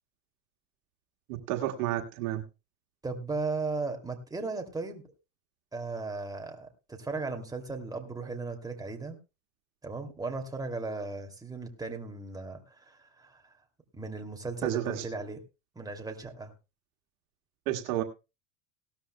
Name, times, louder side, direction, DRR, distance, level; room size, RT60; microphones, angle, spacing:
voice 1, 1.3-2.4 14.6-15.0 17.7-18.0, right 14 dB, 75° right, 4 dB, 1.7 m, -31 dB
voice 2, 3.0-5.0 5.7-9.2 9.8-13.5 13.9-15.4 15.8-16.5, right 3 dB, 10° right, 4 dB, 2.6 m, -36 dB
18.0 x 13.0 x 2.2 m, 0.28 s
supercardioid pair, 105°, 41 cm